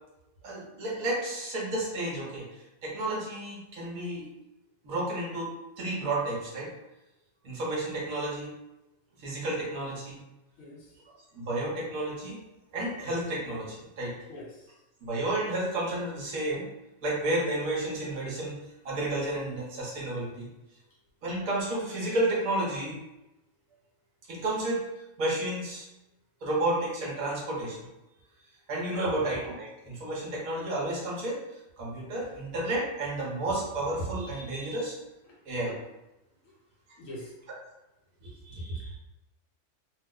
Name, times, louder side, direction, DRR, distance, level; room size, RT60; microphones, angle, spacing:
voice 1, 0.4-4.3 4.8-6.7 7.4-8.5 9.2-10.2 11.3-12.4 12.7-14.1 15.0-16.7 17.0-18.6 18.8-20.5 21.2-23.0 24.3-24.8 25.2-25.9 26.4-27.9 28.7-31.4 31.8-35.0 35.5-35.8 38.2-39.0, right 1 dB, 70° right, -4 dB, 1.2 m, -31 dB
voice 2, 14.3-14.6 29.0-29.2 37.0-37.3, left 1 dB, 65° left, -3 dB, 1.1 m, -42 dB
2.9 x 2.0 x 3.6 m, 0.95 s
omnidirectional pair, 1.6 m